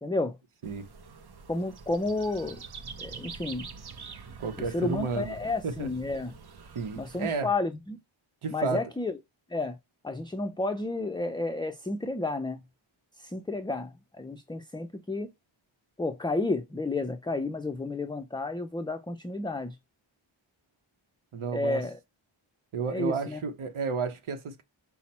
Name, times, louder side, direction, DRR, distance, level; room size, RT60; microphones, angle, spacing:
voice 1, 0.0-0.3 1.5-2.6 3.0-3.7 4.7-6.3 7.0-8.0 8.5-9.1 9.5-9.8 10.0-12.6 13.2-15.3 16.0-19.8 21.5-22.0 22.9-23.4, left 2 dB, 10° left, 0.4 m, -31 dB
sound 1, 0.6-7.4, right 5 dB, 50° right, 0.7 m, -45 dB
voice 2, 4.4-5.4 5.6-5.9 6.7-7.5 8.4-8.9 21.3-21.8 22.7-24.6, right 5 dB, 90° right, 0.8 m, -32 dB
5.7 x 2.1 x 4.1 m
wide cardioid pair, 80°, 48 cm